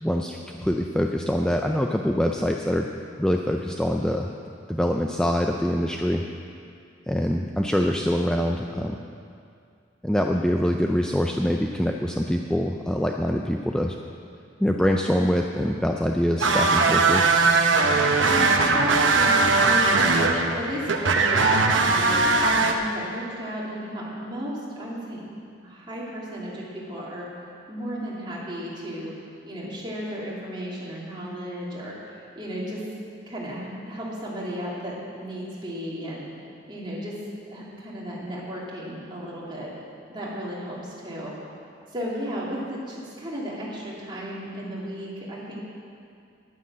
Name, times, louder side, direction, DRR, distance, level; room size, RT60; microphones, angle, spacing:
voice 1, 0.0-2.9 3.2-4.3 4.7-6.2 7.1-9.0 10.0-14.0 14.6-17.4, equal, 5° left, 2 dB, 0.4 m, -24 dB
sound 1, 16.4-22.7, right 3 dB, 75° right, 1.0 m, -20 dB
voice 2, 17.8-25.3 25.6-27.3 27.7-29.1 29.4-32.8 33.3-36.3 36.7-37.1 37.5-39.7 40.1-41.4 41.9-45.6, equal, 25° right, -6 dB, 2.8 m, -34 dB
11.0 x 9.5 x 7.5 m, 2.4 s
head